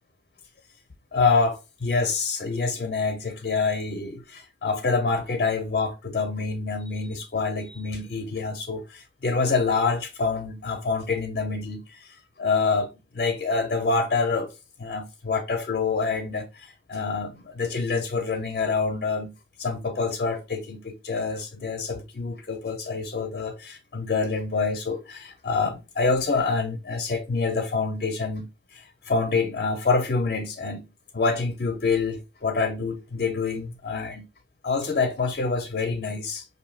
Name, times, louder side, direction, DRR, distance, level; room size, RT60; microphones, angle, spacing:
voice 1, 1.1-14.5 14.8-30.9 31.1-34.3 34.6-36.4, left 4 dB, 50° left, 0.5 m, -26 dB
5.5 x 2.6 x 2.3 m
head